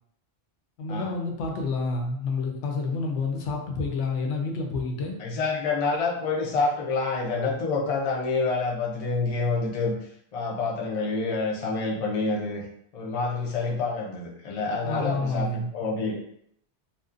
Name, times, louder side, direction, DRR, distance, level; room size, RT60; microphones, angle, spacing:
voice 1, 0.8-5.1 14.8-15.7, left 3 dB, 80° left, 1 dB, 0.9 m, -29 dB
voice 2, 5.2-10.0 10.3-12.6 12.9-16.3, left 3 dB, 50° left, -1 dB, 0.4 m, -27 dB
2.6 x 2.1 x 2.4 m, 0.71 s
omnidirectional pair, 1.2 m